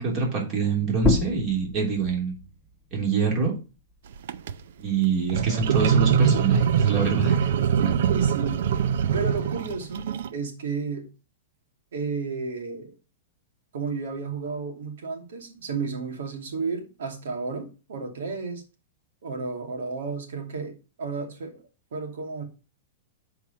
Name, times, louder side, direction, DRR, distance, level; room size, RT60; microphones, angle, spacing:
voice 1, 0.0-2.3 2.9-3.5 4.8-7.5, right 5 dB, 30° right, 0 dB, 3.1 m, -25 dB
sound 1, 0.9-6.2 6.6-8.3, left 3 dB, ahead, 1.6 m, -32 dB
sound 2, 4.1-4.5 5.3-10.3, right 8 dB, 65° right, 0.5 m, -23 dB
voice 2, 7.6-8.8 9.1-11.1 11.9-12.9 13.7-18.6 19.2-22.4, right 4 dB, 85° right, 3 dB, 2.5 m, -32 dB
7.1 x 4.7 x 5.8 m, 0.31 s
supercardioid pair, 160°, 0 cm